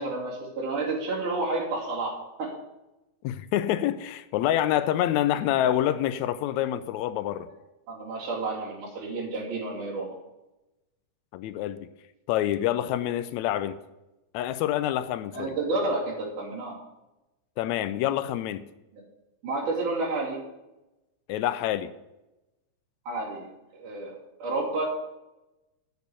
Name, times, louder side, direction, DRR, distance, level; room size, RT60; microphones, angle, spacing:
voice 1, 0.0-2.6 7.9-10.2 15.3-16.8 18.9-19.0 19.4-20.4 23.1-23.5 23.8-24.8, right 2 dB, 85° right, 4.4 m, -30 dB
voice 2, 3.2-7.5 11.3-11.9 12.3-13.8 14.3-15.5 17.6-18.7 21.3-21.9, left 12 dB, 80° left, 1.8 m, -27 dB
8.4 x 6.6 x 8.1 m
omnidirectional pair, 3.5 m